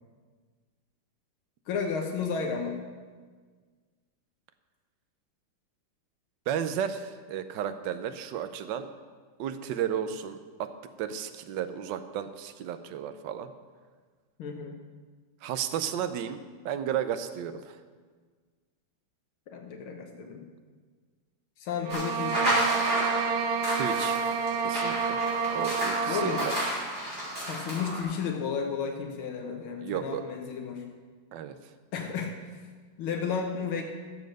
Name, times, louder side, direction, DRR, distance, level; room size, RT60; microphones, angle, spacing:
voice 1, 1.7-2.8 14.4-14.8 19.5-20.4 21.6-22.6 26.1-26.5 27.4-30.8 31.9-32.3 33.0-33.8, left 6 dB, 90° left, 2 dB, 2.0 m, -32 dB
voice 2, 6.5-8.9 9.4-10.7 11.0-13.5 15.4-17.8 23.8-24.2 24.6-25.2 25.5-26.5 29.8-30.3 31.3-31.6, right 9 dB, 70° right, 10 dB, 1.3 m, -33 dB
sound 1, 21.8-26.7, right 6 dB, 85° right, 1.6 m, -29 dB
sound 2, 21.9-28.0, right 1 dB, 20° right, 4.8 m, -32 dB
14.0 x 7.4 x 6.5 m, 1.5 s
omnidirectional pair, 2.2 m